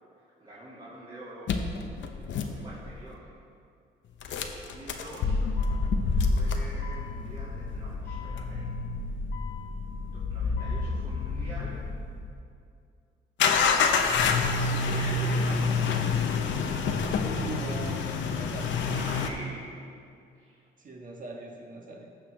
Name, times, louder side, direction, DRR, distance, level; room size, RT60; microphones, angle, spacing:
voice 1, 0.4-1.5 2.1-3.3 4.4-5.4 5.7-5.8 6.2-8.7 10.1-11.8 13.6-15.8 18.9-19.9 20.3-20.6, right 1 dB, 25° right, -9 dB, 2.2 m, -45 dB
sound 1, 1.5-3.1 4.2-12.3 13.4-19.3, left 4 dB, 70° left, 0.8 m, -28 dB
voice 2, 17.2-18.8 20.8-22.1, right 3 dB, 40° right, 0 dB, 1.3 m, -40 dB
15.0 x 5.8 x 3.4 m, 2.4 s
cardioid pair, 90°, 20 cm